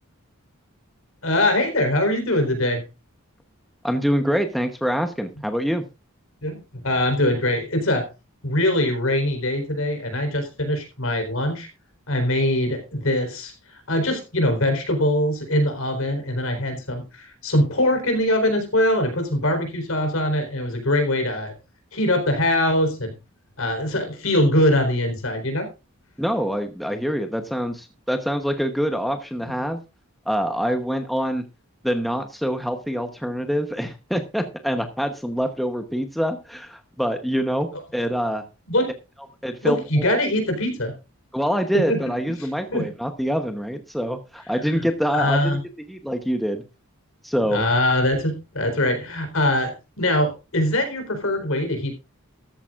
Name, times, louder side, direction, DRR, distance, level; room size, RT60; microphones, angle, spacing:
voice 1, 1.2-2.8 6.4-8.1 8.4-11.7 12.1-13.5 13.9-21.5 21.9-23.1 23.6-25.7 38.7-38.9 39.6-40.9 41.7-42.0 42.7-42.9 44.7-44.8 45.1-45.6 47.5-51.9, left 1 dB, 70° left, 6 dB, 4.1 m, -22 dB
voice 2, 3.8-5.8 26.2-29.8 30.3-31.4 31.8-38.4 39.4-40.2 41.3-45.6 45.9-46.6 47.2-47.6, equal, ahead, 6 dB, 0.9 m, -25 dB
13.5 x 13.0 x 2.5 m, 0.28 s
head